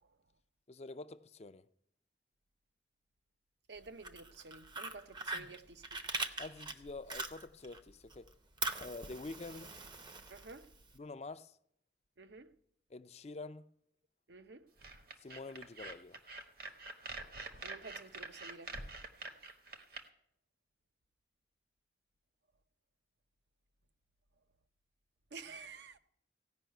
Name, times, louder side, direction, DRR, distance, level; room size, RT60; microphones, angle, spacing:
voice 1, 0.7-1.6 5.3-5.5 6.4-8.3 8.8-9.7 10.9-11.6 12.9-13.7 15.2-16.2, left 3 dB, 35° left, 0.5 m, -47 dB
voice 2, 3.7-5.8 10.3-10.7 12.2-12.5 14.3-14.7 17.6-18.7 25.3-26.0, right 4 dB, 70° right, 0.7 m, -51 dB
Fire, 3.9-7.8 8.1-10.9, right 3 dB, 25° right, 0.7 m, -42 dB
sound 1, 14.8-20.0, right 3 dB, 55° right, 1.1 m, -46 dB
16.0 x 5.6 x 9.1 m
head